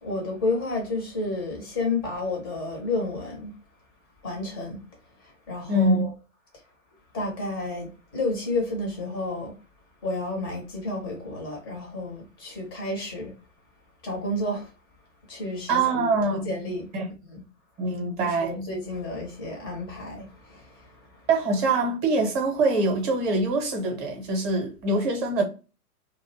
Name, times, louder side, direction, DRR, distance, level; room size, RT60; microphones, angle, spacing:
voice 1, 0.0-3.5 4.2-4.8 5.2-6.1 7.1-9.6 10.0-13.3 14.0-14.7 15.3-17.4 18.2-21.3, left 2 dB, 20° left, 0.4 m, -31 dB
voice 2, 5.7-6.1 15.7-16.5 16.9-17.1 17.8-18.7 21.3-25.4, right 2 dB, 25° right, 0.6 m, -24 dB
2.4 x 2.1 x 2.5 m
hypercardioid pair, 130°, 45 cm